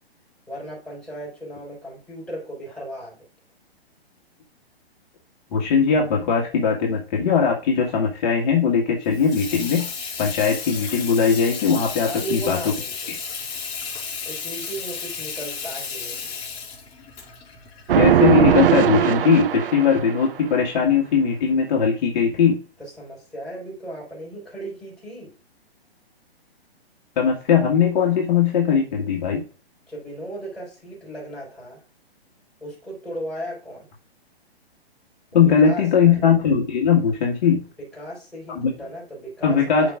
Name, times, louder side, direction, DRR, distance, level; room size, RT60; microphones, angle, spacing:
voice 1, 0.5-3.2 12.0-13.2 14.2-16.4 22.8-25.3 29.9-31.8 32.6-33.9 35.3-36.2 37.8-40.0, right 1 dB, ahead, -6 dB, 4.5 m, -36 dB
voice 2, 5.5-9.9 10.2-12.6 17.9-22.6 27.2-29.4 35.3-37.6 38.6-38.7 39.4-39.9, left 6 dB, 45° left, -1 dB, 1.7 m, -19 dB
Water tap faucet / Sink (filling or washing), 9.0-18.6, left 5 dB, 20° left, 3.9 m, -33 dB
sound 1, 17.9-20.3, right 10 dB, 60° right, 0.7 m, -19 dB
12.5 x 4.8 x 2.5 m, 0.36 s
hypercardioid pair, 140°, 31 cm